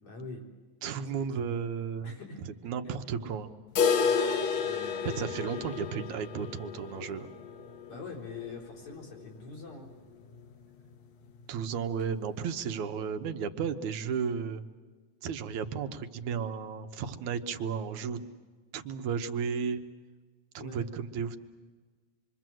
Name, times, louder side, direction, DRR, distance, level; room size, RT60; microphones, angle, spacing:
voice 1, 0.0-0.5 1.0-1.2 2.0-2.4 4.6-5.1 7.9-9.9 20.6-20.9, left 3 dB, 80° left, -3 dB, 5.3 m, -43 dB
voice 2, 0.8-2.2 2.6-3.5 5.2-7.3 11.5-14.6 15.2-18.2 18.7-19.8 20.5-21.4, right 6 dB, 75° right, 7 dB, 2.5 m, -33 dB
sound 1, 3.8-9.6 9.9-10.0 10.3-10.4 10.9-11.0 11.9-12.0, left 6 dB, 65° left, 2.4 m, -31 dB
27.0 x 24.0 x 7.7 m, 1.4 s
omnidirectional pair, 3.4 m